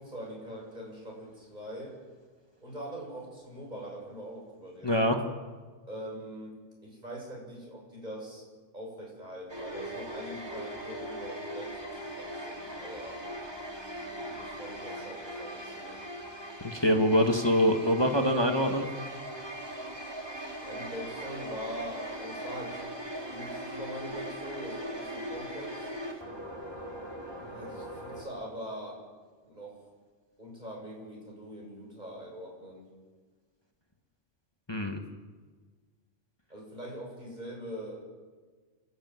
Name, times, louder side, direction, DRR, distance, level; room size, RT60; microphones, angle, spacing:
voice 1, 0.0-2.0 2.6-5.0 5.9-6.5 6.8-8.4 8.7-11.8 12.1-13.2 14.0-16.0 20.6-22.9 23.3-25.9 27.3-29.0 29.4-29.8 30.4-32.9 36.5-38.1, equal, 35° right, -2 dB, 7.3 m, -43 dB
voice 2, 4.8-5.2 16.6-18.9 34.7-35.0, equal, 20° left, 4 dB, 1.7 m, -24 dB
sound 1, 9.5-28.2, right 1 dB, 20° right, 2.9 m, -40 dB
29.5 x 11.5 x 9.4 m, 1.4 s
omnidirectional pair, 1.3 m